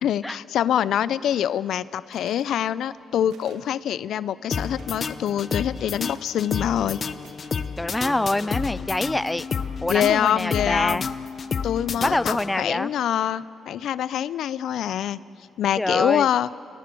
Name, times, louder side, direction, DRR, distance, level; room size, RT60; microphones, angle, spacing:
voice 1, 0.0-7.0 9.9-11.1 11.6-15.2 15.6-16.5, left 10 dB, 75° left, 18 dB, 0.5 m, -25 dB
sound 1, 2.1-2.5 3.3-3.7 4.6-4.9 6.0-6.4 7.2-7.7 8.4-8.9, right 6 dB, 85° right, 2.3 m, -53 dB
sound 2, 4.5-12.8, left 6 dB, 45° left, 0.9 m, -31 dB
voice 2, 7.8-9.5 9.8-11.0 12.0-12.9 15.8-16.3, left 1 dB, 10° left, 17 dB, 0.5 m, -25 dB
27.5 x 19.5 x 7.7 m, 2.7 s
cardioid pair, 90°, 0 cm